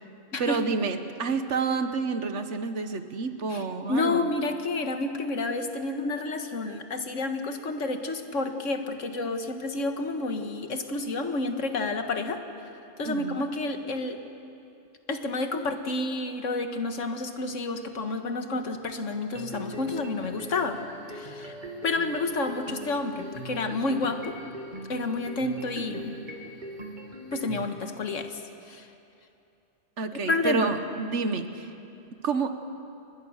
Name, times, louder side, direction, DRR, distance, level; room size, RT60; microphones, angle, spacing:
voice 1, 0.4-4.3 13.0-13.4 30.0-31.7 32.2-32.5, right 4 dB, 70° right, 9 dB, 1.5 m, -29 dB
voice 2, 3.9-12.4 13.0-14.2 15.1-20.8 21.1-21.5 21.8-24.4 24.9-26.1 27.3-28.4 28.7-28.9 30.3-30.7, left 3 dB, 80° left, 6 dB, 1.8 m, -30 dB
sound 1, 19.3-27.6, right 1 dB, 40° right, 2.1 m, -41 dB
30.0 x 21.5 x 6.5 m, 2.7 s
omnidirectional pair, 1.3 m